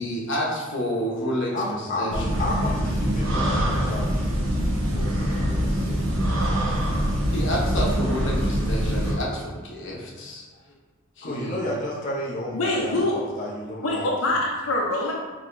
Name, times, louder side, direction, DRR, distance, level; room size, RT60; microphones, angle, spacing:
voice 1, 0.0-1.5 2.0-2.1 7.3-10.4 11.2-11.7, equal, 60° left, -3 dB, 1.0 m, -29 dB
voice 2, 1.5-4.3 4.9-6.4 9.8-10.0 11.2-14.1, left 1 dB, 40° left, -5 dB, 0.6 m, -32 dB
sound 1, 2.1-9.1, equal, 75° right, 0.9 m, -24 dB
voice 3, 12.5-13.2 13.8-15.1, left 2 dB, 80° left, -2 dB, 0.6 m, -24 dB
4.8 x 3.1 x 2.6 m, 1.4 s
head